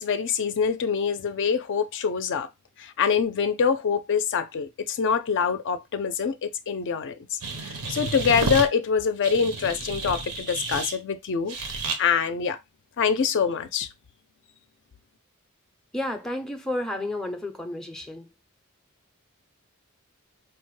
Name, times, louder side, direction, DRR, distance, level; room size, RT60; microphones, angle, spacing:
voice 1, 0.0-2.5 2.8-7.2 7.6-11.5 12.0-12.6 13.0-13.9, left 6 dB, 55° left, 0.4 m, -25 dB
sound 1, 7.4-8.7 9.2-11.0 11.5-12.0, right 3 dB, 90° right, 0.9 m, -31 dB
voice 2, 15.9-18.3, left 1 dB, 5° left, 0.5 m, -31 dB
4.8 x 2.1 x 3.1 m
head